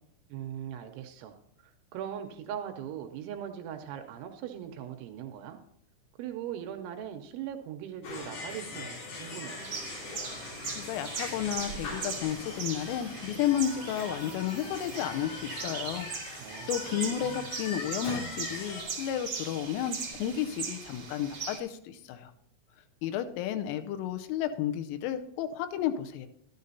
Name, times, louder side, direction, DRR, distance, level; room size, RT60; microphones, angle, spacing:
voice 1, 0.3-1.4 1.6-5.6 6.2-9.8 16.4-17.5, right 9 dB, 85° right, 5 dB, 2.9 m, -40 dB
sound 1, 8.0-18.8, left 3 dB, 60° left, 5.1 m, -41 dB
sound 2, 9.6-21.6, right 5 dB, 45° right, 1.7 m, -40 dB
voice 2, 10.8-16.1 16.4-22.3 23.0-26.3, left 10 dB, 90° left, 9 dB, 3.2 m, -32 dB
13.0 x 12.0 x 2.7 m, 0.75 s
omnidirectional pair, 5.8 m